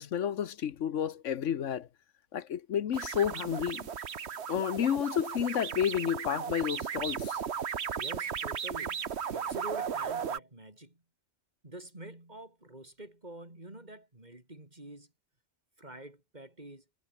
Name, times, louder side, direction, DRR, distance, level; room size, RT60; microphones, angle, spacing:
voice 1, 0.0-1.9 2.3-3.9 4.5-7.4, left 9 dB, 80° left, 1.2 m, -31 dB
sound 1, 2.9-10.4, right 7 dB, 60° right, 1.3 m, -36 dB
voice 2, 8.0-11.0 11.6-15.1 15.8-16.8, right 1 dB, 35° right, 4.5 m, -47 dB
omnidirectional pair, 1.3 m